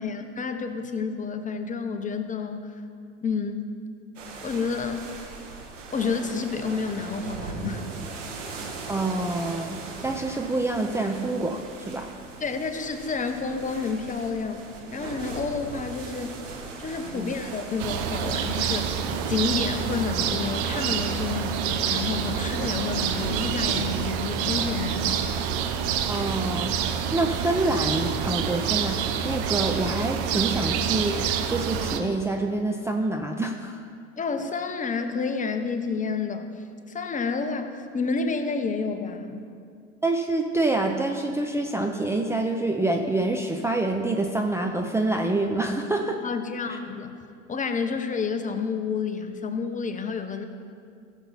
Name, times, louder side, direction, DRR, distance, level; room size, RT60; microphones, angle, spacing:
voice 1, 0.0-2.8 3.2-3.7 4.4-5.0 5.9-7.8 12.4-14.7 14.9-16.4 16.8-19.0 19.3-25.2 34.2-36.5 36.9-39.4 46.2-47.1 47.5-50.4, left 5 dB, 20° left, 7 dB, 1.0 m, -29 dB
sound 1, 4.2-23.4, right 4 dB, 80° right, 1.8 m, -40 dB
voice 2, 8.8-12.1 17.1-17.3 26.1-26.7 27.1-33.8 40.0-46.2 46.7-46.8, right 2 dB, 5° right, 3 dB, 0.6 m, -27 dB
sound 2, 17.8-32.0, right 8 dB, 50° right, 1.1 m, -27 dB
16.0 x 7.2 x 4.3 m, 2.3 s
hypercardioid pair, 85°, 37 cm